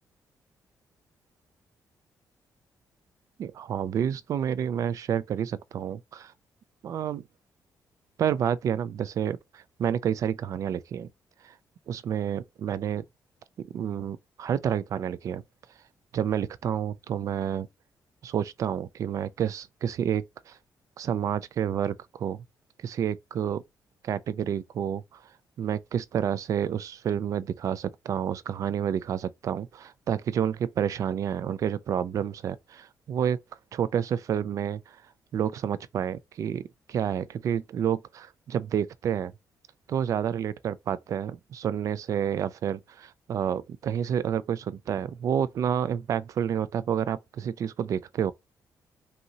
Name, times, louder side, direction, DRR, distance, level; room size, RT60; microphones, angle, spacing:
voice 1, 3.4-6.3 6.8-7.2 8.2-11.1 11.4-11.5 11.9-13.0 13.6-15.4 16.1-17.7 18.2-20.6 21.0-22.4 22.8-23.6 24.0-25.2 25.6-33.4 33.7-35.0 35.3-39.3 39.9-48.3, right 8 dB, 50° right, 0.3 m, -29 dB
5.4 x 2.7 x 2.8 m
wide cardioid pair, 170°, 7 cm